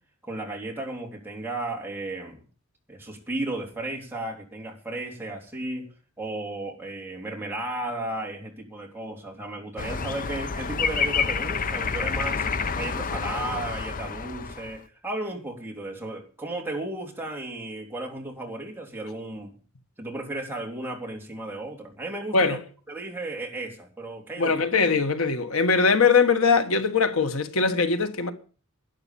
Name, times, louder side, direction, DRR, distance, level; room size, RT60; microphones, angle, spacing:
voice 1, 0.2-2.4 2.9-5.9 6.2-12.4 12.8-19.6 20.0-22.6 22.9-24.6, right 2 dB, 10° right, 3.5 m, -34 dB
sound 1, 9.8-14.8, left 5 dB, 40° left, 0.7 m, -28 dB
voice 2, 24.4-28.3, left 4 dB, 85° left, 1.5 m, -21 dB
12.0 x 9.9 x 7.0 m
head